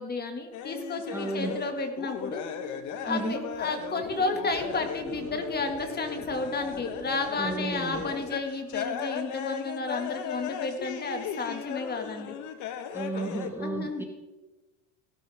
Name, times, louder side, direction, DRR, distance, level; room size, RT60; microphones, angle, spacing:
voice 1, 0.0-2.4 3.0-12.3 12.9-13.0 13.6-14.0, left 3 dB, 25° left, 5 dB, 2.2 m, -32 dB
sound 1, 0.5-13.5, left 8 dB, 50° left, 1.4 m, -37 dB
voice 2, 1.1-1.6 3.1-3.5 7.4-8.1 12.9-14.0, right 2 dB, 5° right, 2 dB, 1.5 m, -33 dB
sound 2, 2.2-8.4, right 5 dB, 45° right, 2.7 m, -45 dB
17.5 x 12.5 x 3.7 m, 1.1 s
supercardioid pair, 105°, 37 cm